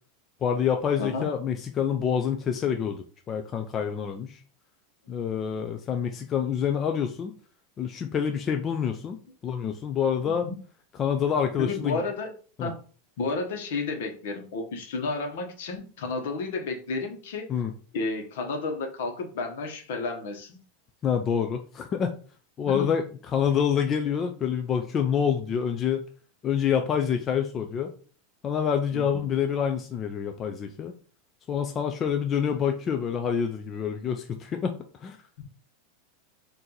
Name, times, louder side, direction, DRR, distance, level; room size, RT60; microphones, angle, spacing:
voice 1, 0.4-4.4 5.1-7.3 7.8-10.5 11.0-12.0 12.6-12.7 17.5-17.7 21.0-22.1 22.6-23.0 23.3-26.0 26.4-27.9 28.4-30.9 31.5-34.8 35.0-35.2, left 8 dB, 20° left, 5 dB, 0.3 m, -27 dB
voice 2, 10.2-10.6 11.6-12.3 12.6-12.8 13.2-17.5 17.9-20.6 22.7-22.9 28.9-29.2, left 3 dB, 65° left, 4 dB, 1.1 m, -32 dB
4.3 x 2.6 x 3.8 m, 0.40 s
supercardioid pair, 170°, 0 cm